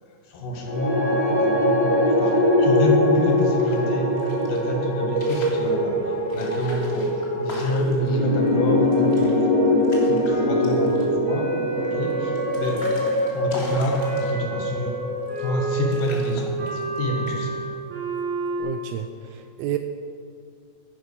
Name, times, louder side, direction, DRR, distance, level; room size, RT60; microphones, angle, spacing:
voice 1, 0.3-9.5 10.0-11.5 11.8-15.0 15.4-17.6, left 1 dB, 75° left, 1 dB, 3.1 m, -28 dB
sound 1, 0.6-16.9, left 1 dB, 10° right, 2.0 m, -23 dB
sound 2, 3.3-4.6 5.0-5.7 6.3-8.1 8.5-8.6 8.8-9.3 9.6-10.3 10.6-11.2 11.8-14.5 15.2-15.6 15.9-17.0 17.3-17.6, left 1 dB, 25° left, 1.4 m, -41 dB
Wind instrument woodwind instrument, 10.3-13.6 14.0-18.6, right 3 dB, 70° right, 4.0 m, -30 dB
voice 2, 18.6-19.8, right 12 dB, 90° right, 7 dB, 1.7 m, -30 dB
11.0 x 10.5 x 5.3 m, 2.3 s
omnidirectional pair, 4.0 m